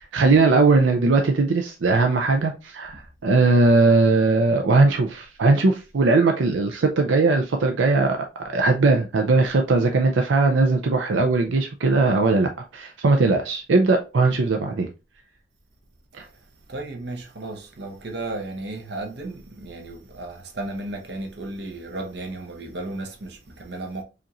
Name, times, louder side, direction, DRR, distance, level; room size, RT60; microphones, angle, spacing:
voice 1, 0.1-8.2 8.4-14.9 16.2-16.3, right 3 dB, 90° right, 0.5 m, -19 dB
voice 2, 16.7-24.0, right 2 dB, 65° right, 0.9 m, -34 dB
5.0 x 2.6 x 2.9 m
head